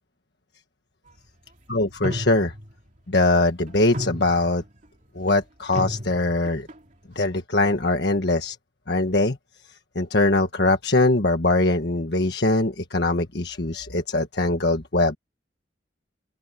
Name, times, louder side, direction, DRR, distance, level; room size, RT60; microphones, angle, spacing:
voice 1, 1.7-2.5 3.1-4.6 5.1-6.7 7.1-8.6 8.9-9.4 9.9-15.2, left 2 dB, 60° left, 1.5 m, -22 dB
sound 1, 2.0-2.7 3.7-4.6 5.3-5.4 5.7-6.7, equal, 40° right, 3.3 m, -32 dB
open air
head